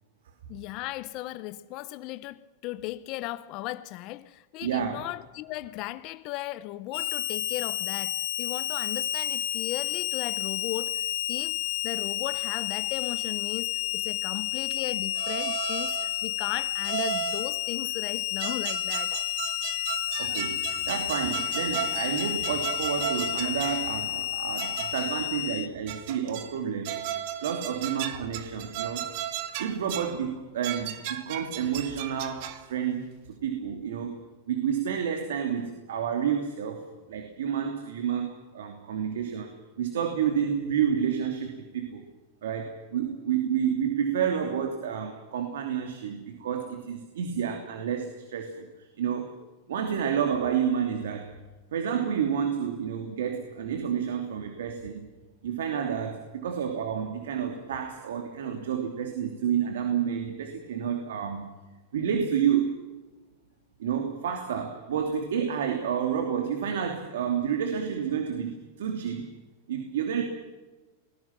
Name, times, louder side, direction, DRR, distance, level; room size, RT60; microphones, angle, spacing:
voice 1, 0.5-19.2, left 17 dB, 40° left, 0.7 m, -37 dB
voice 2, 4.6-5.0 20.2-27.0 27.4-29.0 29.6-34.2 34.5-36.8 37.1-42.0 42.4-49.3 49.7-51.3 51.7-55.1 55.4-61.5 61.9-62.7 63.8-69.3 69.7-70.2, right 8 dB, 85° right, 3.0 m, -30 dB
Harmonica, 6.9-25.7, left 14 dB, 60° left, 1.3 m, -31 dB
sound 1, 15.2-16.2 16.8-17.5 18.1-23.9 24.6-25.2 25.9-26.6 26.8-30.2 30.6-32.7, right 11 dB, 55° right, 2.0 m, -35 dB
28.5 x 20.5 x 6.1 m
supercardioid pair, 150°, 0 cm